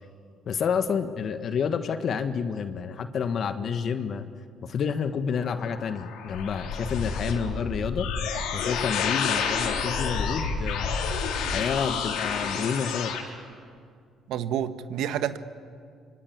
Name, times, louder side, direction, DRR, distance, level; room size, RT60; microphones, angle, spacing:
voice 1, 0.5-4.3 4.6-8.1 8.5-11.1 11.5-13.1, left 6 dB, 55° left, 8 dB, 1.6 m, -29 dB
sound 1, 5.6-13.2, left 5 dB, 80° left, 4.2 m, -29 dB
voice 2, 14.3-15.4, right 10 dB, 75° right, 11 dB, 1.4 m, -29 dB
25.0 x 24.5 x 9.6 m, 2.2 s
supercardioid pair, 75°, 0 cm